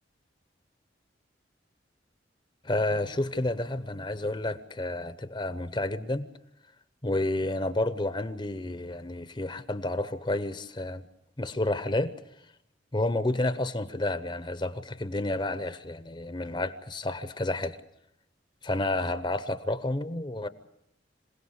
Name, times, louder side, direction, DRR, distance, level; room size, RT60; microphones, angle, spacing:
voice 1, 2.6-6.3 7.0-11.1 11.4-12.1 12.9-17.8 18.6-20.5, left 2 dB, 25° left, 12 dB, 0.8 m, -30 dB
26.5 x 17.5 x 8.1 m, 0.81 s
head